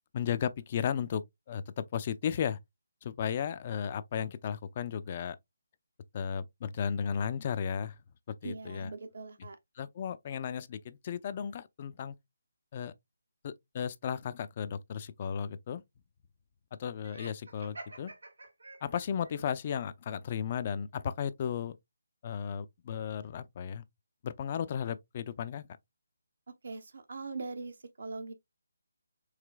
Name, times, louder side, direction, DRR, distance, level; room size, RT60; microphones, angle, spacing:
voice 1, 0.1-2.6 3.0-5.4 6.1-8.0 8.4-8.9 9.8-12.1 12.7-12.9 13.4-15.8 16.7-18.1 18.8-21.8 22.2-23.8 24.2-25.7, left 8 dB, 30° left, 0.4 m, -35 dB
voice 2, 8.4-9.6 26.5-28.3, right 3 dB, 65° right, 0.9 m, -41 dB
Laughter, 17.0-19.3, right 2 dB, 80° right, 1.5 m, -48 dB
4.9 x 3.2 x 2.2 m
figure-of-eight pair, 160°, 0 cm